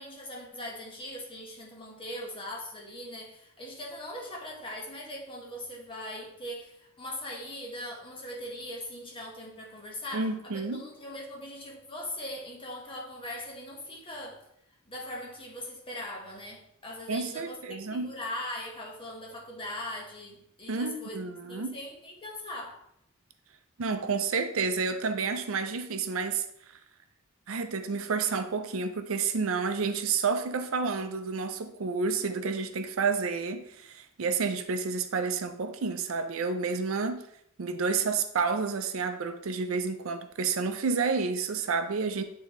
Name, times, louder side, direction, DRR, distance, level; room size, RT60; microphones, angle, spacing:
voice 1, 0.0-14.4 14.8-21.2 21.5-22.8, left 1 dB, 25° left, -2 dB, 1.3 m, -40 dB
voice 2, 10.1-10.8 17.1-18.1 20.7-21.7 23.8-26.4 27.5-37.2 37.6-42.2, right 4 dB, 70° right, 8 dB, 0.5 m, -30 dB
8.6 x 3.8 x 3.1 m, 0.74 s
head